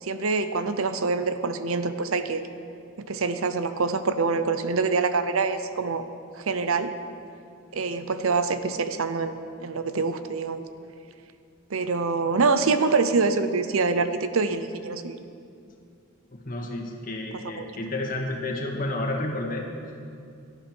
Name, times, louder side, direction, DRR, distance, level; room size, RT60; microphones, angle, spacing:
voice 1, 0.0-2.4 3.0-6.0 6.4-6.9 7.7-10.6 11.7-15.2 17.6-17.7, right 4 dB, 75° right, 10 dB, 0.7 m, -25 dB
voice 2, 16.3-19.7, left 2 dB, 40° left, 0 dB, 1.9 m, -31 dB
17.5 x 12.0 x 4.5 m, 2.4 s
head